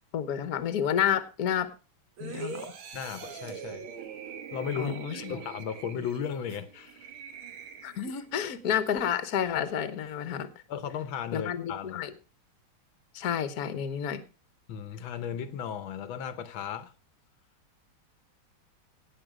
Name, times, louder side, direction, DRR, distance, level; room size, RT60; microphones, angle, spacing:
voice 1, 0.1-1.7 2.2-2.7 4.8-5.4 7.8-10.5 11.3-12.1 13.1-14.2, left 9 dB, 55° left, 1.4 m, -30 dB
sound 1, 2.2-8.3 8.7-8.9, right 6 dB, 90° right, 2.3 m, -42 dB
voice 2, 2.9-3.9 4.5-7.1 8.4-8.5 10.7-12.0 14.7-16.9, left 8 dB, 75° left, 1.6 m, -35 dB
17.5 x 6.6 x 5.0 m
omnidirectional pair, 2.3 m